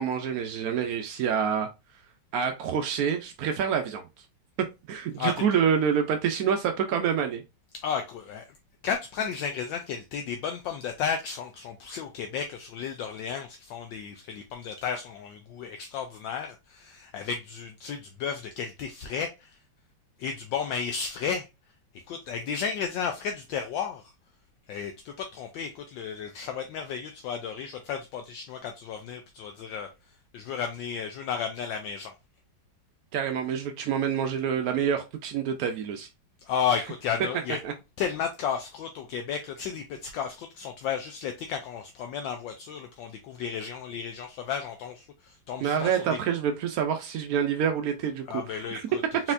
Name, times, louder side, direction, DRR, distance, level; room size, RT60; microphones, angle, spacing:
voice 1, 0.0-1.7 2.3-4.1 4.9-7.4 33.1-36.1 37.6-37.7 45.6-48.9 49.2-49.3, right 7 dB, 80° right, 0.8 m, -27 dB
voice 2, 7.7-8.5 8.8-19.6 20.2-21.5 22.1-24.0 24.7-29.9 30.3-32.1 36.5-37.6 38.0-45.9 48.3-49.2, left 7 dB, 75° left, 1.2 m, -33 dB
4.3 x 4.2 x 2.5 m
omnidirectional pair, 2.2 m